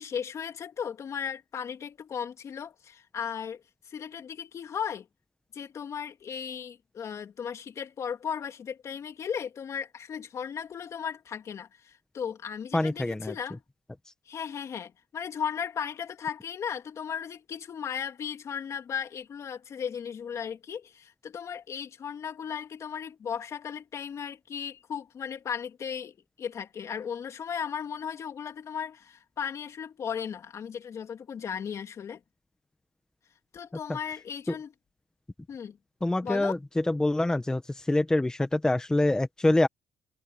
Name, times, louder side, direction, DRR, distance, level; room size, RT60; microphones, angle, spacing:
voice 1, 0.0-5.1 5.5-13.6 14.3-32.2 33.5-34.7 35.5-35.8 36.2-36.5, left 7 dB, 50° left, 3.1 m, -36 dB
voice 2, 12.7-13.3 36.0-36.6 36.9-37.6 37.9-39.7, left 2 dB, 10° left, 1.4 m, -25 dB
cardioid pair, 110°, 7 cm